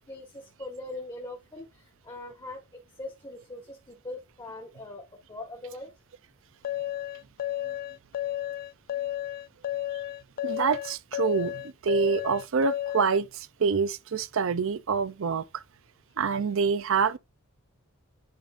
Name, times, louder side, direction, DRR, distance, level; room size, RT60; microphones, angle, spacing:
voice 1, 0.1-5.9, left 2 dB, 20° left, 1.5 m, -41 dB
sound 1, 6.6-13.2, left 12 dB, 40° left, 0.3 m, -32 dB
voice 2, 10.4-15.6 16.2-17.2, right 5 dB, 65° right, 0.5 m, -26 dB
10.5 x 5.2 x 2.5 m
head